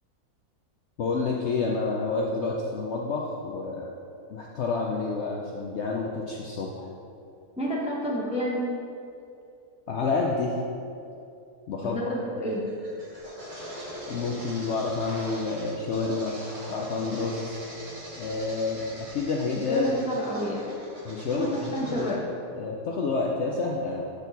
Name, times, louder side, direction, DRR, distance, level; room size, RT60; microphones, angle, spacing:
voice 1, 1.0-3.9 4.3-6.8 9.9-10.5 11.7-12.0 12.4-12.5 14.1-16.3 16.7-17.6 18.2-19.9 21.0-21.5 21.9-22.2 22.5-24.0, left 4 dB, 65° left, -1 dB, 0.7 m, -29 dB
voice 2, 7.6-8.6 11.8-12.6 19.7-20.6 21.3-22.3, equal, 5° right, -4 dB, 0.5 m, -30 dB
sound 1, 12.5-22.1, equal, 25° right, 1.1 m, -42 dB
8.2 x 4.2 x 4.0 m, 2.6 s
omnidirectional pair, 1.7 m